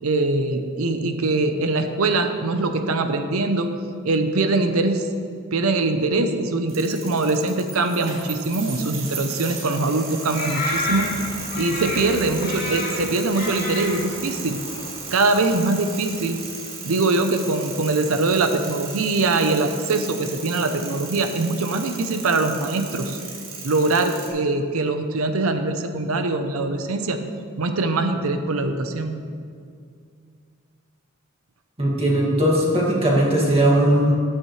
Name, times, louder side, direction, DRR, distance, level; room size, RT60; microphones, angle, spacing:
voice 1, 0.0-3.7 4.0-5.1 5.5-11.1 11.6-14.6 15.1-16.4 16.8-23.2 23.6-27.2 27.6-29.1, right 2 dB, 80° right, 7 dB, 0.7 m, -22 dB
sound 1, 6.7-24.3, right 4 dB, 65° right, 2.2 m, -36 dB
sound 2, 10.3-16.2, left 2 dB, 40° left, 2.1 m, -31 dB
voice 2, 31.8-34.1, right 1 dB, 25° right, -4 dB, 2.1 m, -18 dB
13.0 x 9.6 x 3.2 m, 2.3 s
head